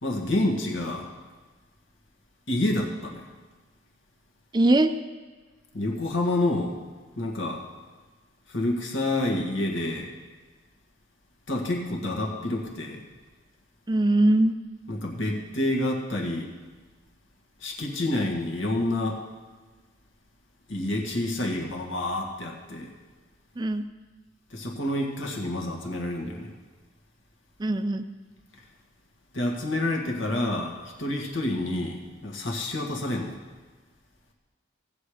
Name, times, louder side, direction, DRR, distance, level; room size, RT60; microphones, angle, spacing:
voice 1, 0.0-1.1 2.5-3.2 5.7-6.8 7.2-7.6 8.5-10.1 11.5-13.0 14.9-16.5 17.6-19.2 20.7-22.9 24.5-26.5 29.3-33.4, left 1 dB, 75° left, 1 dB, 1.9 m, -28 dB
voice 2, 4.5-4.9 13.9-14.6 23.6-23.8 27.6-28.1, right 1 dB, 20° right, 9 dB, 0.4 m, -21 dB
16.5 x 7.6 x 5.0 m, 1.3 s
head